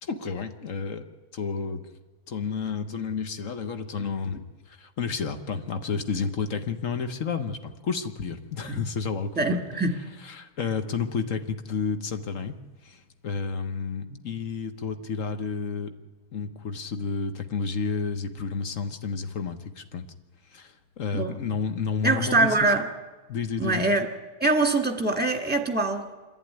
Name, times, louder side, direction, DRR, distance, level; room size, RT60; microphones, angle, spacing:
voice 1, 0.0-1.0 1.3-1.8 2.3-9.6 10.2-12.5 12.8-15.9 16.3-20.1 20.5-22.7 23.3-23.9, left 5 dB, 55° left, 8 dB, 1.5 m, -31 dB
voice 2, 9.4-10.0 14.1-14.2 21.1-21.4 22.0-22.8 23.6-24.1 24.4-26.1, right 2 dB, 5° right, 4 dB, 1.8 m, -24 dB
27.0 x 11.5 x 9.8 m, 1.2 s
omnidirectional pair, 1.7 m